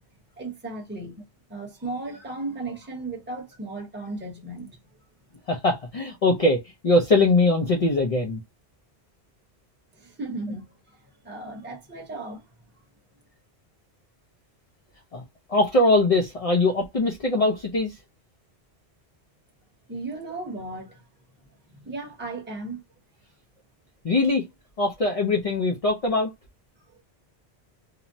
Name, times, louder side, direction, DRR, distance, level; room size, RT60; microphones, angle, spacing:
voice 1, 0.4-1.2 1.5-4.7 9.9-11.0 11.2-12.4 19.9-21.0 21.7-22.8, right 2 dB, 10° right, 0.8 m, -35 dB
voice 2, 5.5-6.6 6.8-8.4 15.1-15.2 15.5-17.9 24.0-24.4 24.8-26.3, left 2 dB, 45° left, 0.4 m, -21 dB
2.8 x 2.0 x 2.6 m
omnidirectional pair, 1.1 m